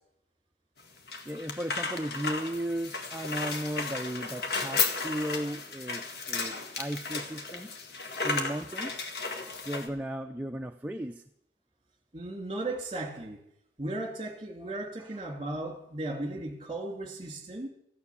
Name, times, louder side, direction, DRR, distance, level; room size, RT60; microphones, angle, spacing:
sound 1, 0.8-9.9, left 4 dB, 60° left, 1.7 m, -34 dB
voice 1, 1.2-7.7 8.2-9.1 9.6-11.2 15.0-15.2, right 1 dB, 10° right, 4 dB, 0.5 m, -35 dB
voice 2, 12.1-13.4 13.8-17.7, right 2 dB, 25° right, 4 dB, 2.5 m, -36 dB
15.0 x 9.6 x 7.0 m, 0.77 s
head